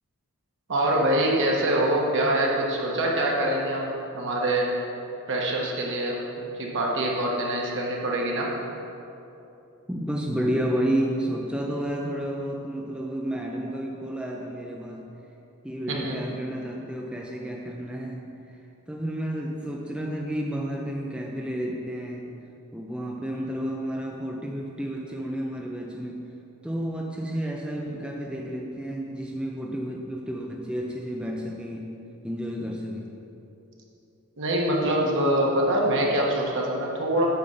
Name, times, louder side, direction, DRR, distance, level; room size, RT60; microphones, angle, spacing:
voice 1, 0.7-4.7 5.3-8.5 15.9-16.2 34.4-37.3, right 1 dB, 60° right, -2 dB, 1.4 m, -24 dB
voice 2, 9.9-15.1 15.6-18.3 18.9-22.3 22.7-26.3 26.6-31.9 32.2-33.2, equal, 5° right, -1 dB, 0.4 m, -31 dB
8.7 x 4.1 x 6.5 m, 2.8 s
head